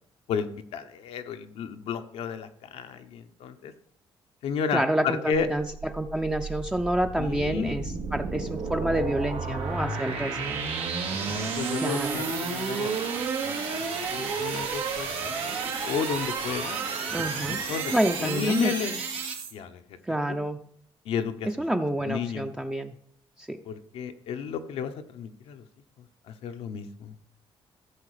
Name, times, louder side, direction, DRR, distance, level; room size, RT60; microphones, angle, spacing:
voice 1, 0.3-3.7 4.4-5.5 7.2-7.8 11.1-12.9 13.4-13.6 14.1-15.1 15.4-16.8 17.2-17.9 18.2-19.0 19.5-19.8 20.3-20.4 21.0-21.5 22.0-22.5 23.6-25.6 26.3-27.1, left 7 dB, 80° left, 7 dB, 1.0 m, -32 dB
voice 2, 4.7-5.7 5.9-10.6 11.8-12.2 17.1-17.6 17.9-18.7 20.1-20.6 21.4-23.0 23.4-23.6, right 1 dB, 10° right, 4 dB, 0.6 m, -28 dB
sound 1, 5.3-19.5, right 5 dB, 90° right, 2.3 m, -31 dB
14.5 x 6.5 x 4.9 m, 0.67 s
cardioid pair, 105°, 10 cm